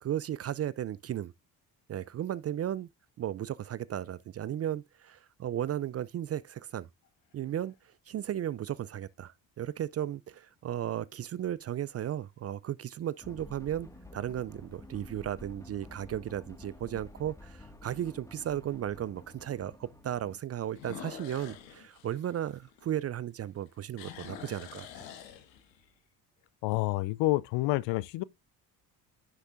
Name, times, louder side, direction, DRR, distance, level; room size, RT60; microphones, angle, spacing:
voice 1, 0.0-1.3 1.9-2.9 3.2-6.9 7.3-7.7 8.1-25.0, right 11 dB, 35° right, 0.4 m, -35 dB
sound 1, 7.0-7.7 8.4-8.5 13.7-14.2 14.6-14.7 15.3-15.4 15.7-15.8 17.3-17.4 20.7-23.2 23.6-25.9, left 8 dB, 85° left, 1.4 m, -47 dB
sound 2, 13.2-20.4, left 1 dB, 5° left, 1.7 m, -50 dB
voice 2, 26.6-28.2, left 19 dB, 65° left, 0.6 m, -28 dB
9.8 x 6.1 x 2.5 m
hypercardioid pair, 50°, 49 cm